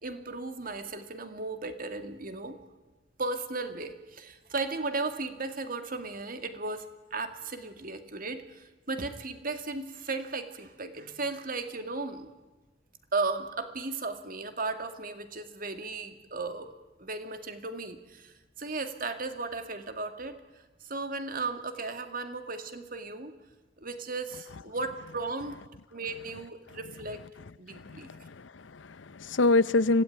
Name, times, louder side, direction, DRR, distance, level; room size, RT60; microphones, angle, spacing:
voice 1, 0.0-2.6 3.2-12.3 13.1-16.7 17.0-20.4 20.8-23.3 23.8-25.6 25.9-27.2 27.6-28.3, right 3 dB, 50° right, 8 dB, 2.2 m, -35 dB
voice 2, 27.7-30.0, left 2 dB, 90° left, 18 dB, 0.7 m, -26 dB
25.5 x 17.0 x 9.3 m, 1.2 s
head